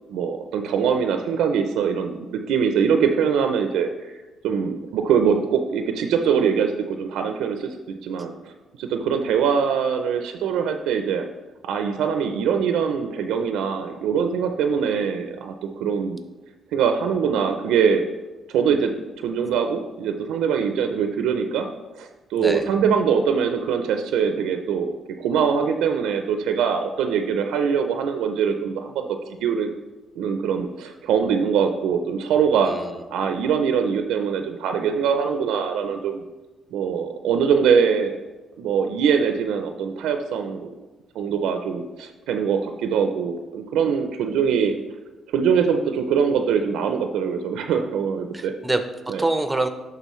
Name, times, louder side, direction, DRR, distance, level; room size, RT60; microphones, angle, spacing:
voice 1, 0.1-3.9 4.4-7.8 8.0-8.3 8.8-11.3 11.6-16.2 16.7-18.0 18.5-18.9 19.2-21.7 22.0-29.7 30.2-32.7 33.1-36.2 36.7-38.2 38.6-40.7 41.1-44.7 45.3-48.5 49.1-49.2, right 7 dB, 90° right, 6 dB, 0.5 m, -23 dB
voice 2, 22.4-22.7 32.6-33.4 48.3-49.7, right 2 dB, 10° right, 8 dB, 0.7 m, -26 dB
11.0 x 3.9 x 3.1 m, 1.2 s
cardioid pair, 90°, 0 cm